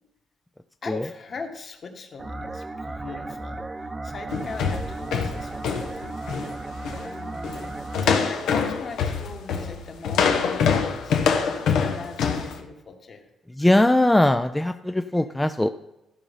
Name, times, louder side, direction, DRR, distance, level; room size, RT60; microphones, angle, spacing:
voice 1, 0.8-6.4 7.0-7.8 8.2-11.2 11.7-13.2, left 4 dB, 50° left, 2 dB, 1.9 m, -40 dB
sound 1, 2.2-8.3, right 2 dB, 20° right, 0.8 m, -35 dB
sound 2, 4.3-6.5 6.8-7.1 7.4-7.7 7.9-12.5, left 6 dB, 80° left, 1.2 m, -24 dB
voice 2, 13.6-15.7, left 1 dB, 10° left, 8 dB, 0.4 m, -20 dB
14.0 x 5.3 x 5.6 m, 0.93 s
cardioid pair, 90°, 0 cm